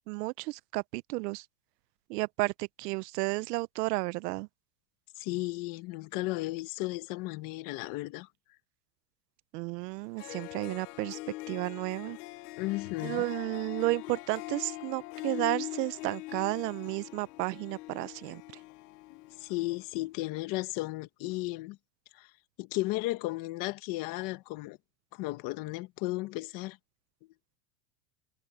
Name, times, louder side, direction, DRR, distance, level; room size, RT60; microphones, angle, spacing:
voice 1, 0.1-1.5 2.1-4.5 9.5-11.2 11.5-12.2 13.0-18.4, right 23 dB, 75° right, 0.6 m, -32 dB
voice 2, 5.2-8.3 12.6-13.2 19.1-21.8 22.1-22.3 22.6-24.8 25.1-26.8, left 20 dB, 40° left, 1.4 m, -34 dB
Harp, 9.9-10.0 10.2-19.7, left 19 dB, 70° left, 0.9 m, -42 dB
supercardioid pair, 170°, 48 cm